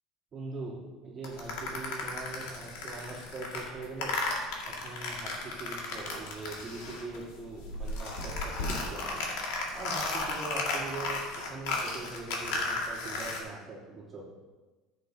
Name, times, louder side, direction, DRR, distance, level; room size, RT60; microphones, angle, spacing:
voice 1, 0.3-4.2 4.6-9.2 9.7-14.3, right 3 dB, 20° right, -7 dB, 2.9 m, -42 dB
sound 1, 1.2-7.3 7.5-13.4, left 3 dB, 85° left, 2.1 m, -35 dB
14.5 x 8.1 x 2.8 m, 1.2 s
cardioid pair, 170°, 0 cm